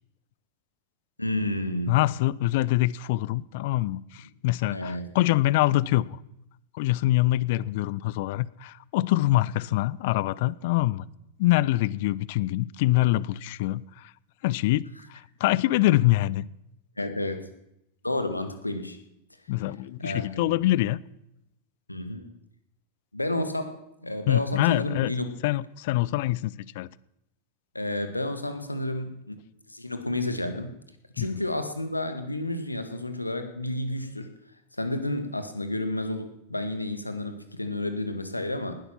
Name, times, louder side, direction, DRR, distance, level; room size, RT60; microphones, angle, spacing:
voice 1, 1.2-2.0 4.7-5.1 17.0-17.5 18.0-19.0 20.0-20.6 21.9-22.3 23.1-25.2 27.8-29.4 29.7-30.7 31.1-34.3 34.8-38.8, left 1 dB, 85° left, 8 dB, 1.8 m, -31 dB
voice 2, 1.9-6.2 6.7-11.0 11.4-14.1 14.4-16.5 19.5-21.0 24.3-25.1 25.4-26.9 31.2-31.3, left 16 dB, 50° left, 22 dB, 0.5 m, -25 dB
19.5 x 12.0 x 5.9 m, 0.84 s
figure-of-eight pair, 90°, 0 cm